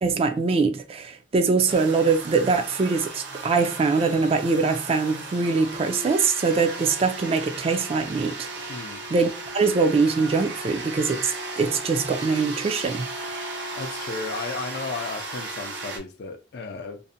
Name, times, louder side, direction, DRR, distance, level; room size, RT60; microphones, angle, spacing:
voice 1, 0.0-8.5 9.1-13.0, right 4 dB, 35° right, 0.3 m, -23 dB
sound 1, 1.7-16.0, right 2 dB, 70° right, 0.7 m, -35 dB
voice 2, 8.7-9.0 13.7-17.0, left 4 dB, 60° left, 0.4 m, -34 dB
2.6 x 2.0 x 2.5 m
head